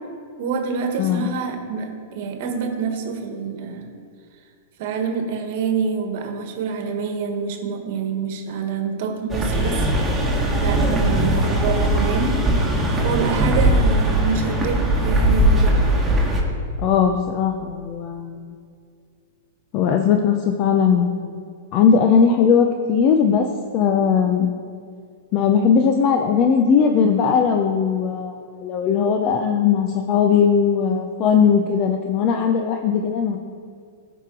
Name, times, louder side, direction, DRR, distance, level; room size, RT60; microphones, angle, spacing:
voice 1, 0.4-3.9 4.8-9.8 10.6-12.4 13.0-15.8, right 5 dB, 60° right, 5 dB, 1.3 m, -26 dB
sound 1, 9.3-16.4, right 1 dB, 10° right, 1.7 m, -19 dB
voice 2, 16.8-18.5 19.7-21.4 21.7-23.5 23.7-24.5 25.3-33.4, left 6 dB, 40° left, 4 dB, 0.6 m, -19 dB
13.5 x 5.0 x 3.8 m, 2.2 s
hypercardioid pair, 125°, 0 cm